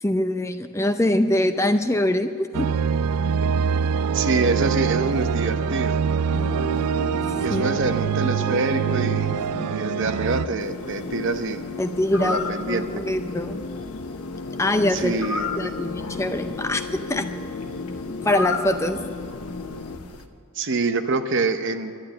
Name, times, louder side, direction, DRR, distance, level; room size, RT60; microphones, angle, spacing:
voice 1, 0.0-2.7 7.5-7.7 11.8-13.6 14.6-15.2 15.6-17.3 18.2-19.0, left 1 dB, 15° left, 8 dB, 0.5 m, -23 dB
sound 1, 2.5-10.5, right 7 dB, 90° right, 0.3 m, -24 dB
voice 2, 4.1-6.0 7.4-9.3 9.7-11.6 12.2-12.9 14.9-15.8 20.6-21.9, right 3 dB, 55° right, 9 dB, 0.8 m, -26 dB
sound 2, 6.3-20.0, left 3 dB, 55° left, 0.8 m, -34 dB
sound 3, 10.6-20.3, left 4 dB, 80° left, 1.0 m, -36 dB
11.5 x 11.5 x 8.8 m, 2.3 s
head